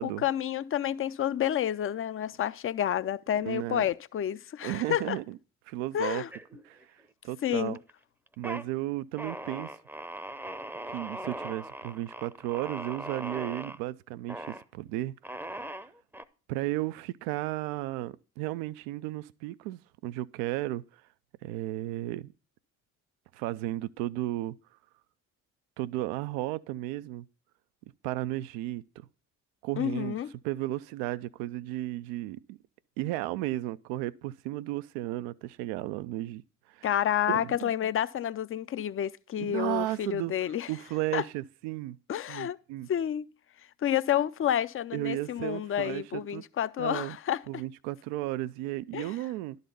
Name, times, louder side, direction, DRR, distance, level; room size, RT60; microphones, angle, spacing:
voice 1, 0.0-5.2 5.9-6.3 7.4-7.8 29.8-30.3 36.8-40.7 41.1-41.2 42.1-42.6 42.9-43.3 43.8-47.4 48.9-49.2, left 10 dB, 35° left, 0.5 m, -29 dB
voice 2, 3.4-3.8 4.6-5.4 5.7-6.2 6.7-6.8 7.2-7.8 8.4-9.7 10.9-15.1 16.5-20.8 21.4-22.3 23.3-24.5 25.8-27.3 28.0-28.8 29.6-30.2 30.4-32.6 33.0-36.4 36.7-36.9 37.3-37.7 39.4-40.3 40.7-42.0 42.3-42.9 44.9-46.4 46.8-47.2 47.5-49.6, right 16 dB, 75° right, 0.5 m, -34 dB
sound 1, 6.3-7.1 7.4-7.9 8.3-8.7 9.2-13.8 14.3-14.6 15.2-16.2, right 1 dB, 5° right, 0.7 m, -39 dB
11.5 x 4.0 x 6.8 m
hypercardioid pair, 50°, 40 cm